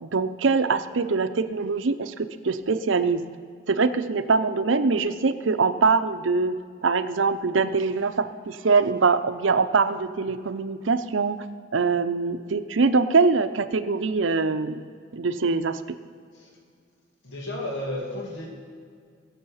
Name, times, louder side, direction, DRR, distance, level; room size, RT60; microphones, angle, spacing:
voice 1, 0.0-3.2 3.7-6.5 6.8-11.4 11.7-14.8 15.1-15.8, right 4 dB, 90° right, 11 dB, 0.7 m, -23 dB
voice 2, 17.2-18.5, left 1 dB, 85° left, -1 dB, 2.4 m, -32 dB
21.5 x 7.3 x 5.6 m, 2.1 s
head